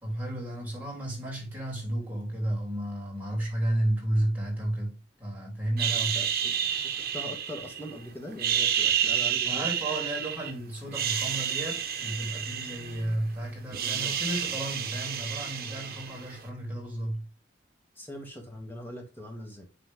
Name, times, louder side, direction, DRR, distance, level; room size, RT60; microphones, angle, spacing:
voice 1, 0.0-6.3 9.5-17.3, right 1 dB, 10° right, 3.5 m, -32 dB
sound 1, 5.8-7.9 8.3-10.5 10.9-13.3 13.5-16.4, right 8 dB, 55° right, 1.3 m, -30 dB
voice 2, 6.1-6.5 7.0-9.7 13.8-14.1 18.0-19.7, left 1 dB, 10° left, 2.0 m, -41 dB
9.6 x 3.9 x 3.7 m
head